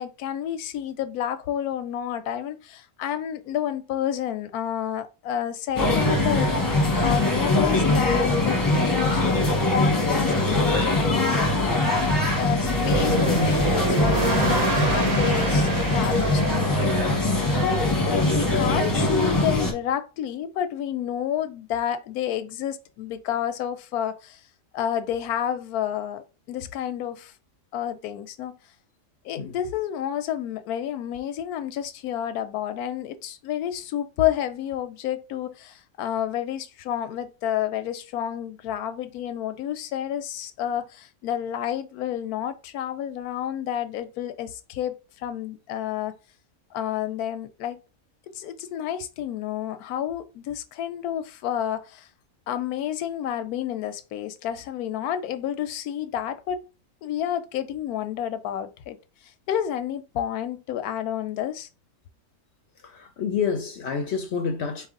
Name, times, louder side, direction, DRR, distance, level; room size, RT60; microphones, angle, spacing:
voice 1, 0.0-6.5 7.0-12.0 12.4-17.4 17.6-24.4 24.7-27.3 27.7-28.6 29.2-46.1 46.7-47.8 48.3-52.1 52.5-56.6 57.0-59.0 59.5-61.7, left 10 dB, 90° left, 1.1 m, -30 dB
sound 1, 5.8-19.7, left 2 dB, 15° left, 0.8 m, -22 dB
sound 2, 12.7-17.8, right 3 dB, 75° right, 1.8 m, -27 dB
voice 2, 62.8-64.9, left 6 dB, 60° left, 0.7 m, -28 dB
4.4 x 3.2 x 3.7 m
omnidirectional pair, 1.5 m